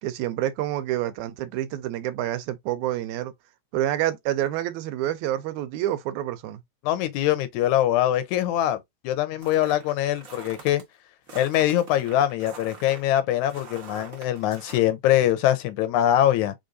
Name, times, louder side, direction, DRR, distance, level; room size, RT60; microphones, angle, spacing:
voice 1, 0.0-3.3 3.7-6.6, right 13 dB, 85° right, 2.1 m, -28 dB
voice 2, 6.8-8.8 9.0-10.8 11.3-16.5, left 12 dB, 85° left, 2.2 m, -23 dB
sound 1, 9.4-10.8 11.3-14.8, right 4 dB, 40° right, 1.3 m, -44 dB
5.1 x 3.4 x 2.7 m
omnidirectional pair, 3.3 m